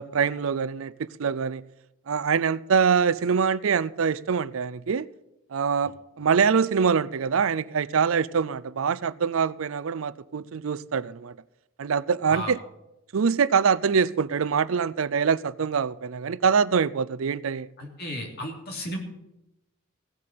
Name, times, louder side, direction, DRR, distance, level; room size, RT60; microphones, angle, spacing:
voice 1, 0.0-1.6 2.1-5.1 5.5-11.3 11.8-12.6 13.1-17.7, right 6 dB, 80° right, 0.5 m, -24 dB
voice 2, 17.8-19.0, equal, 50° left, 3.1 m, -34 dB
16.0 x 7.8 x 7.6 m
head